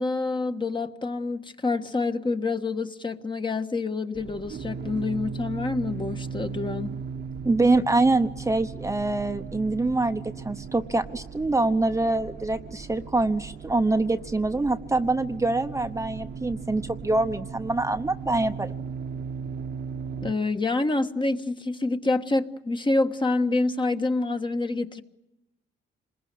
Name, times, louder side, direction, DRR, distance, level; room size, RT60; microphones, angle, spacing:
voice 1, 0.0-7.0 20.2-25.0, left 3 dB, 25° left, 1.4 m, -27 dB
sound 1, 4.1-20.3, right 6 dB, 55° right, 1.3 m, -37 dB
voice 2, 7.4-18.7, right 2 dB, 15° right, 1.0 m, -25 dB
27.0 x 21.0 x 9.3 m
cardioid pair, 90°, 20 cm